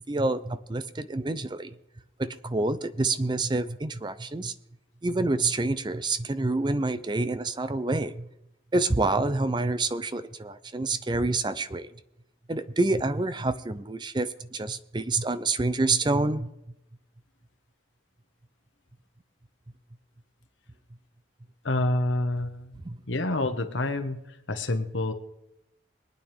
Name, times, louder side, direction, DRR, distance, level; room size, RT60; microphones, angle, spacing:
voice 1, 0.0-1.7 2.2-4.5 5.0-8.3 8.7-11.9 12.5-16.5 22.8-23.0, right 2 dB, 25° right, 13 dB, 0.5 m, -27 dB
voice 2, 21.6-22.8 23.1-24.2 24.5-25.1, left 2 dB, 90° left, 8 dB, 1.2 m, -27 dB
22.5 x 9.2 x 3.5 m, 0.87 s
head